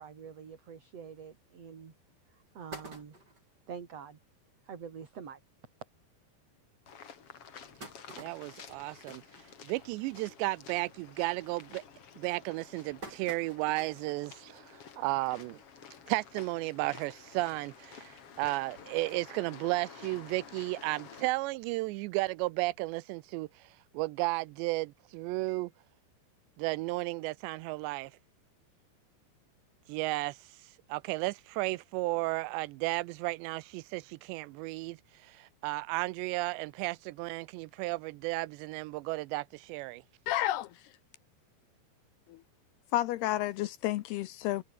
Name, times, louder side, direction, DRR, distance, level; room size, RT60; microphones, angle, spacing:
voice 1, 0.0-1.9 2.5-3.2 3.7-4.2 4.7-5.4, right 7 dB, 40° right, 3.4 m, -46 dB
sound 1, 1.6-1.7 2.2-2.3 2.5-3.5 4.1-4.2 4.5-4.6 4.9-5.1 5.8-5.9 6.4-6.5 7.2-10.1 10.5-10.8 11.1-11.5 12.2-14.2 14.6-14.7 15.9-16.0, right 2 dB, 20° right, 7.6 m, -49 dB
sound 2, 6.9-21.3, left 7 dB, 40° left, 2.6 m, -51 dB
voice 2, 8.2-9.2 9.6-11.8 12.2-15.6 16.1-23.7 23.9-25.7 26.6-28.1 29.9-30.5 30.9-40.0, right 21 dB, 85° right, 2.8 m, -34 dB
voice 3, 40.3-40.8 42.3-42.4 42.9-44.6, left 15 dB, 75° left, 2.6 m, -31 dB
omnidirectional pair, 5.1 m